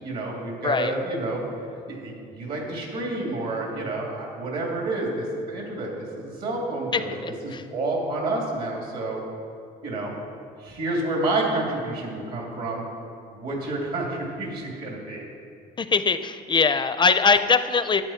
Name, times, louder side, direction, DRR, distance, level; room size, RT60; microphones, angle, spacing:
voice 1, 0.0-1.4 1.9-7.1 7.4-9.2 9.8-10.1 10.6-12.8 13.3-15.2, right 2 dB, 65° right, -1 dB, 3.1 m, -29 dB
voice 2, 0.6-0.9 6.9-7.6 15.8-18.0, left 5 dB, 25° left, 11 dB, 0.4 m, -22 dB
12.5 x 8.9 x 4.4 m, 2.4 s
cardioid pair, 110°, 17 cm